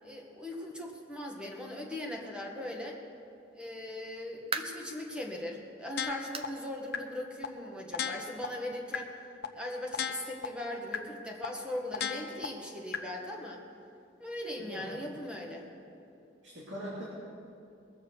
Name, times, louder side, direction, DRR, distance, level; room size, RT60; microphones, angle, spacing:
voice 1, 0.0-3.0 3.5-9.1 9.5-13.6 14.2-15.7, left 1 dB, 5° right, -1 dB, 1.7 m, -39 dB
sound 1, 3.9-4.9 5.4-5.6 6.3-6.6 6.9-7.0 7.5-7.6 8.7-8.8, right 5 dB, 30° right, 0.7 m, -38 dB
sound 2, 6.0-6.5 6.9-7.0 7.4-7.5 7.9-8.5 8.9-9.0 9.4-9.5 9.9-10.5 10.9-11.0 11.4-11.5 11.9-12.5 12.9-13.0, left 7 dB, 60° left, 0.8 m, -34 dB
voice 2, 14.6-15.0 16.4-17.0, right 1 dB, 70° right, -7 dB, 2.8 m, -41 dB
21.5 x 7.2 x 6.5 m, 2.6 s
head